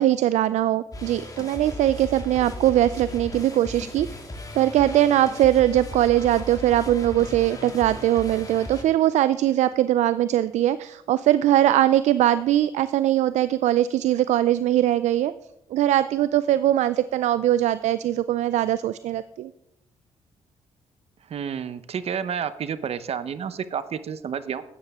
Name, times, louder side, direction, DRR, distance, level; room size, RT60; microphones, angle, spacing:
voice 1, 0.0-4.3 4.5-15.3 15.7-19.5, right 12 dB, 70° right, 15 dB, 0.4 m, -21 dB
sound 1, 0.9-8.8, left 2 dB, 30° left, 2.0 m, -37 dB
voice 2, 21.3-24.6, right 7 dB, 55° right, 14 dB, 0.8 m, -30 dB
12.0 x 8.9 x 3.6 m, 0.80 s
supercardioid pair, 65°, 12 cm